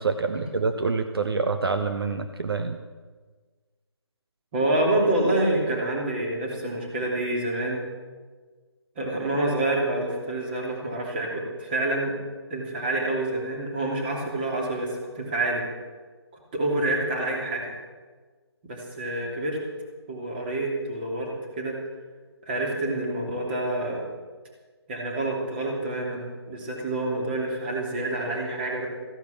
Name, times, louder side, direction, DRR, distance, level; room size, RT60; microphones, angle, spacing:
voice 1, 0.0-2.8, right 4 dB, 60° right, 7 dB, 1.0 m, -26 dB
voice 2, 4.5-7.8 9.0-12.1 12.5-15.6 16.5-17.7 18.6-19.6 20.1-21.3 21.6-21.7 22.5-24.1 24.9-28.9, right 2 dB, 20° right, -1 dB, 2.9 m, -27 dB
15.0 x 10.5 x 7.1 m, 1.4 s
figure-of-eight pair, 165°, 14 cm